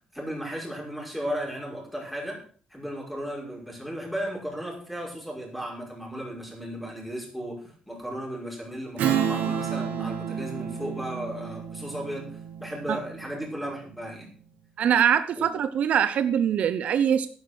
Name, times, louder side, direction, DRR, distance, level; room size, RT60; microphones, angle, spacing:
voice 1, 0.1-2.4 2.7-14.3 15.4-15.5, equal, ahead, -1 dB, 5.6 m, -35 dB
Strum, 9.0-13.9, right 8 dB, 85° right, 2.5 m, -30 dB
voice 2, 14.8-17.3, right 8 dB, 60° right, 12 dB, 0.8 m, -23 dB
11.5 x 9.8 x 6.2 m, 0.43 s
cardioid pair, 130°, 3 cm